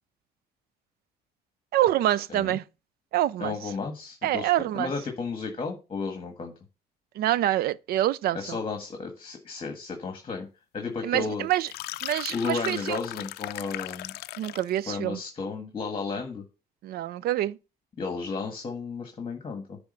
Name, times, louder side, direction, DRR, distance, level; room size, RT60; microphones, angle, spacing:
voice 1, 1.7-2.6 3.1-3.5 4.2-4.9 7.2-8.6 11.0-11.7 12.0-13.0 14.4-15.2 16.8-17.6, right 13 dB, 65° right, 0.5 m, -26 dB
voice 2, 2.3-2.6 3.4-6.5 8.3-10.5 10.7-11.5 12.3-14.1 14.9-16.4 18.0-19.8, left 4 dB, 30° left, 1.7 m, -33 dB
sound 1, 11.5-14.8, left 16 dB, 75° left, 0.4 m, -37 dB
9.6 x 3.6 x 6.8 m
cardioid pair, 110°, 17 cm